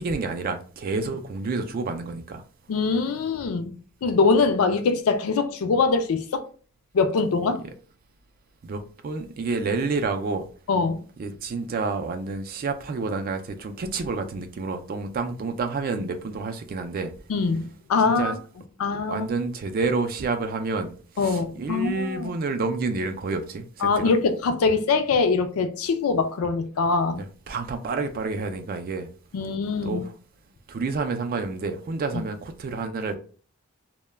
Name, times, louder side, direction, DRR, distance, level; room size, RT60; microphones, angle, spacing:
voice 1, 0.0-2.4 8.6-10.5 11.2-17.1 18.0-18.4 19.1-24.1 27.2-29.1 29.8-30.1 30.7-33.2, right 3 dB, 40° right, 0.3 m, -29 dB
voice 2, 2.7-3.7 4.0-6.5 6.9-7.6 10.7-11.0 17.3-18.4 18.8-19.3 21.2-22.3 23.8-27.2 29.3-30.0, left 4 dB, 70° left, 0.4 m, -23 dB
2.1 x 2.1 x 3.2 m
head